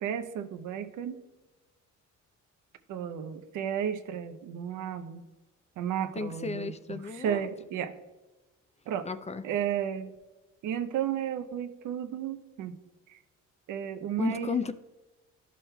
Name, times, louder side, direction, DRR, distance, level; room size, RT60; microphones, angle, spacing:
voice 1, 0.0-1.2 2.9-5.2 5.8-7.9 8.9-9.1 9.4-10.1 10.6-12.8 13.1-13.2 13.7-14.5, right 9 dB, 80° right, 9 dB, 0.7 m, -33 dB
voice 2, 6.2-7.5 9.0-9.4 14.2-14.7, left 5 dB, 25° left, 12 dB, 0.3 m, -33 dB
11.5 x 6.2 x 2.2 m, 1.1 s
cardioid pair, 90°, 30 cm